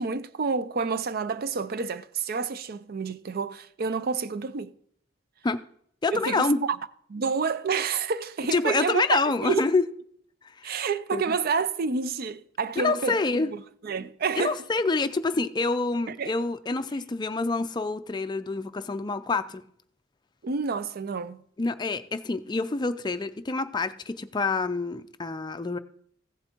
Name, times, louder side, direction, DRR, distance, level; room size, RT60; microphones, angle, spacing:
voice 1, 0.0-4.7 6.1-6.8 7.1-9.0 9.4-9.6 10.6-14.6 16.1-16.3 20.4-21.4, right 5 dB, 50° right, 0.5 m, -29 dB
voice 2, 6.0-6.6 8.5-9.8 10.6-10.9 11.1-11.4 12.8-13.5 14.4-19.6 21.6-25.8, left 3 dB, 20° left, 0.4 m, -27 dB
15.5 x 7.8 x 2.9 m
head